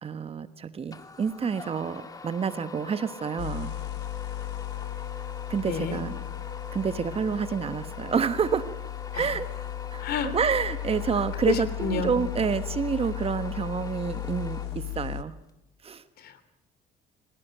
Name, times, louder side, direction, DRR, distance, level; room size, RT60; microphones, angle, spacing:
voice 1, 0.0-3.7 5.5-6.1 6.7-8.7 9.1-9.5 9.9-10.0 10.3-15.3 15.8-16.0, right 6 dB, 35° right, 12 dB, 1.2 m, -28 dB
sound 1, 0.9-15.2, left 3 dB, 20° left, 2.0 m, -44 dB
sound 2, 3.4-15.2, left 14 dB, 85° left, 0.9 m, -36 dB
voice 2, 5.6-6.0 9.1-9.3 10.0-10.3 11.5-12.2 16.2-16.4, left 5 dB, 70° left, 13 dB, 3.1 m, -29 dB
26.5 x 17.5 x 9.1 m, 0.90 s
cardioid pair, 110°, 17 cm